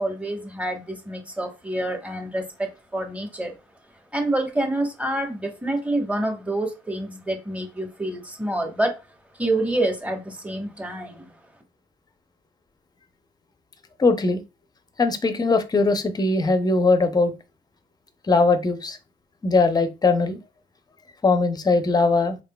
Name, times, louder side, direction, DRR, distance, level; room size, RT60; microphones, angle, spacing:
voice 1, 0.0-3.5 4.1-9.0 9.4-11.3, right 1 dB, 5° right, 1.1 m, -27 dB
voice 2, 14.0-14.4 15.0-17.3 18.3-19.0 19.4-20.4 21.2-22.4, left 3 dB, 20° left, 0.6 m, -20 dB
3.7 x 3.6 x 2.3 m
cardioid pair, 90°, 20 cm